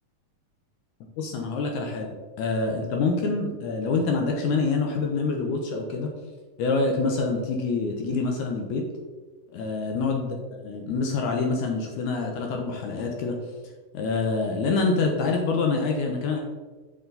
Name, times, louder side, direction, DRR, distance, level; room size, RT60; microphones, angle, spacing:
voice 1, 1.2-6.1 6.6-8.8 9.5-10.3 10.6-13.4 13.9-16.4, left 3 dB, 75° left, 2 dB, 2.1 m, -26 dB
7.2 x 5.8 x 3.9 m, 1.3 s
omnidirectional pair, 3.8 m